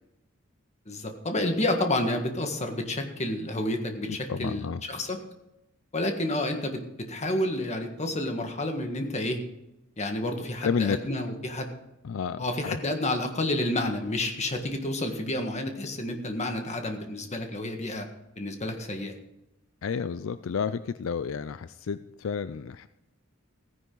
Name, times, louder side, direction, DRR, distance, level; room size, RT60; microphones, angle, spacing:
voice 1, 0.9-5.2 5.9-9.4 10.0-11.7 12.4-18.1 18.4-19.1, left 1 dB, 35° left, 4 dB, 1.7 m, -30 dB
voice 2, 4.1-4.8 10.6-11.0 12.0-12.8 19.8-22.9, left 6 dB, 75° left, 13 dB, 0.4 m, -31 dB
15.0 x 10.0 x 3.9 m, 0.91 s
head